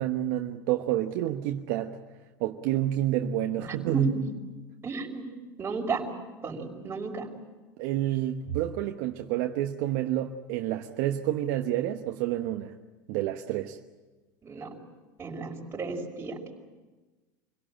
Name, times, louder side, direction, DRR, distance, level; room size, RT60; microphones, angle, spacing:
voice 1, 0.0-2.0 2.4-4.1 7.8-12.7 13.1-13.8, right 13 dB, 65° right, 4 dB, 1.1 m, -29 dB
voice 2, 3.7-4.2 4.8-5.2 5.6-6.1 6.4-7.3 14.4-14.8 15.2-16.4, right 3 dB, 25° right, 1 dB, 5.4 m, -33 dB
26.0 x 17.5 x 9.0 m, 1.2 s
hypercardioid pair, 90°, 10 cm